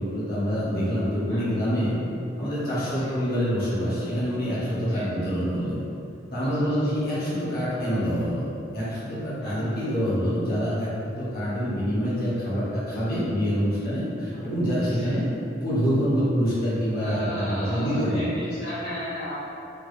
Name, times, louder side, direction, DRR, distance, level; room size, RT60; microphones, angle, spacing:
voice 1, 0.0-1.9 2.4-5.8 6.3-8.5 8.7-10.9 11.2-15.2 15.5-18.4, equal, 55° left, -10 dB, 1.1 m, -26 dB
voice 2, 1.3-1.6 2.9-3.1 4.9-5.0 6.4-6.7 9.4-9.7 14.3-14.4 14.8-15.1 17.0-19.4, equal, 70° left, -13 dB, 0.8 m, -36 dB
3.3 x 2.6 x 2.6 m, 2.8 s
head